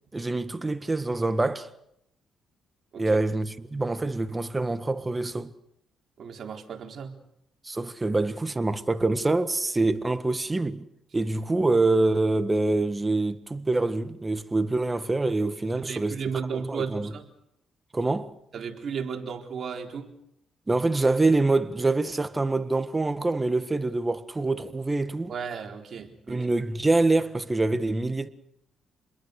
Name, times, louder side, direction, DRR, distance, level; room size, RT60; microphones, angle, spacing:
voice 1, 0.1-1.7 3.0-5.5 7.6-10.9 11.1-16.2 16.5-17.1 17.9-18.3 20.7-25.3 26.3-28.3, right 2 dB, 20° right, 1.7 m, -25 dB
voice 2, 6.2-7.1 15.9-17.2 18.5-20.1 25.3-26.5, right 6 dB, 55° right, 4.2 m, -34 dB
28.0 x 21.5 x 6.7 m
cardioid pair, 90°, 0 cm